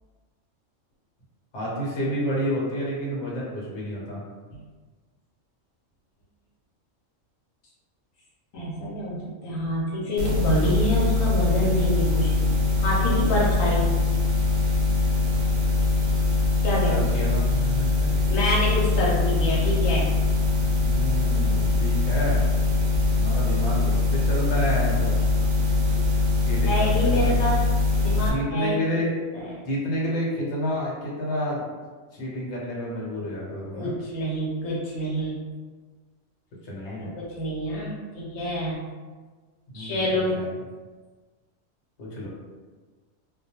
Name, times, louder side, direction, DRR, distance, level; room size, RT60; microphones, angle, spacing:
voice 1, 1.5-4.2 16.9-18.1 20.6-22.5 23.1-25.3 26.4-27.5 28.1-29.1 29.6-31.6 32.1-33.9 36.6-37.1 39.7-40.5 42.0-42.3, equal, 65° left, -4 dB, 1.0 m, -30 dB
voice 2, 8.5-13.9 16.6-17.0 18.3-20.1 25.8-25.9 26.7-27.6 28.0-29.0 29.3-29.5 33.7-35.4 37.0-38.8 39.7-40.5, equal, 85° left, -5 dB, 1.0 m, -27 dB
sound 1, 10.2-28.3, left 2 dB, 75° right, 0.9 m, -22 dB
2.2 x 2.1 x 2.8 m, 1.4 s
omnidirectional pair, 1.3 m